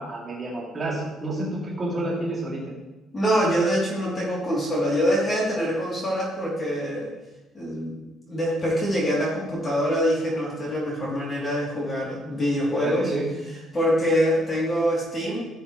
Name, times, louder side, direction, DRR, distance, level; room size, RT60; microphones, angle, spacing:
voice 1, 0.0-2.6 12.8-13.2, right 2 dB, 20° right, -6 dB, 2.9 m, -29 dB
voice 2, 3.1-7.1 7.5-7.9 8.3-13.1 13.7-15.4, equal, 20° left, -5 dB, 3.1 m, -24 dB
16.0 x 7.6 x 3.2 m, 1.0 s
cardioid pair, 175°, 0 cm